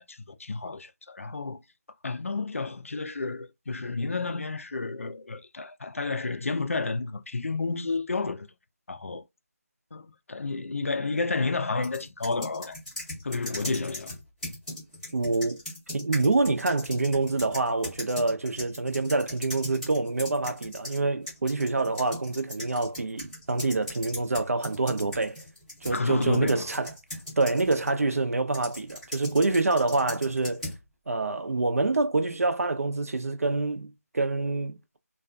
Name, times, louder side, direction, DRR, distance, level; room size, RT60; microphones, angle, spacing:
voice 1, 0.0-1.6 2.0-8.5 8.9-9.2 9.9-12.8 13.2-14.2 25.9-26.7, left 3 dB, 55° left, 0.4 m, -31 dB
sound 1, 11.8-21.0 21.3-27.9 28.5-30.8, left 1 dB, ahead, 0.6 m, -40 dB
voice 2, 15.1-15.6 15.9-25.4 25.8-26.9 27.4-30.7 31.1-35.0, right 3 dB, 60° right, 0.5 m, -26 dB
2.4 x 2.3 x 2.3 m
figure-of-eight pair, 170°, 9 cm